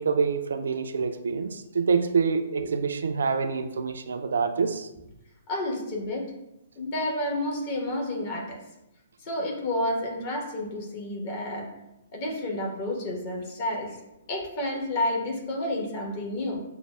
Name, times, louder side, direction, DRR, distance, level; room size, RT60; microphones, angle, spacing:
voice 1, 0.0-4.9, right 5 dB, 60° right, 7 dB, 0.3 m, -26 dB
voice 2, 5.5-6.3 6.8-8.6 9.2-11.7 12.1-14.0 14.3-16.6, left 1 dB, 35° left, 0 dB, 1.0 m, -30 dB
6.3 x 2.2 x 2.2 m, 0.90 s
figure-of-eight pair, 120°, 0 cm